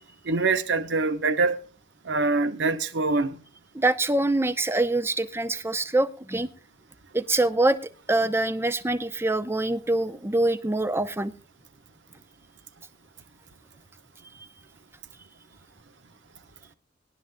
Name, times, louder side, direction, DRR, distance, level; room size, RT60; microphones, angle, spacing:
voice 1, 0.3-1.6 2.0-3.4, right 3 dB, 80° right, 0.9 m, -24 dB
voice 2, 3.7-6.5 7.1-7.8 8.1-11.3, right 2 dB, 15° right, 0.6 m, -24 dB
22.0 x 11.5 x 2.2 m
head